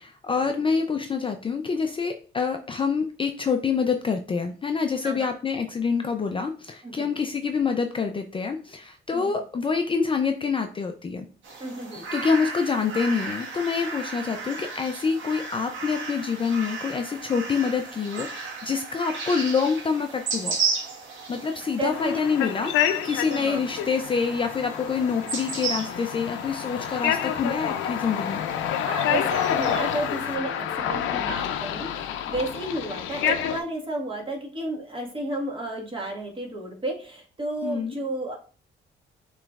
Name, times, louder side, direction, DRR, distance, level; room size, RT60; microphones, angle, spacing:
voice 1, 0.0-11.3 12.1-20.6 21.3-28.4 37.6-38.0, left 5 dB, 25° left, 5 dB, 0.4 m, -26 dB
sound 1, 11.4-30.4, right 4 dB, 70° right, 1.4 m, -35 dB
voice 2, 11.6-12.0 21.5-22.2 23.3-23.6 28.8-38.4, right 1 dB, 25° right, 0 dB, 1.5 m, -32 dB
sound 2, 21.9-33.6, left 9 dB, 90° left, 0.5 m, -28 dB
7.2 x 3.0 x 2.4 m, 0.40 s
cardioid pair, 90°, 20 cm